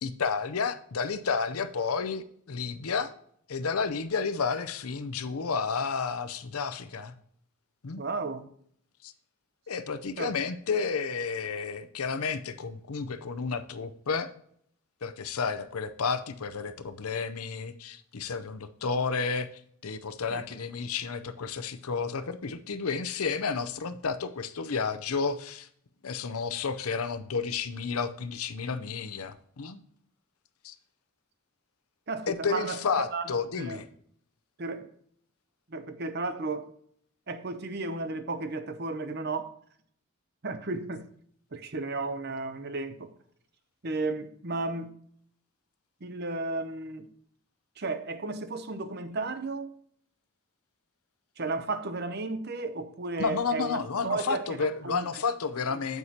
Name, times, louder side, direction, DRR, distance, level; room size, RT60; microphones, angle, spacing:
voice 1, 0.0-3.1 3.5-7.1 7.8-8.0 9.0-9.1 9.7-14.3 15.0-19.5 19.8-25.7 26.0-29.8 30.6-30.7 32.3-33.9 53.2-56.0, left 5 dB, 85° left, 0.7 m, -31 dB
voice 2, 8.0-8.5 10.2-10.3 20.3-20.4 32.1-32.8 33.1-33.8 34.6-34.9 35.7-36.7 37.3-39.5 40.4-41.0 41.5-43.1 43.8-44.9 46.0-47.1 47.8-49.7 51.4-55.1, right 3 dB, 50° right, 0.7 m, -34 dB
9.2 x 8.1 x 2.8 m
head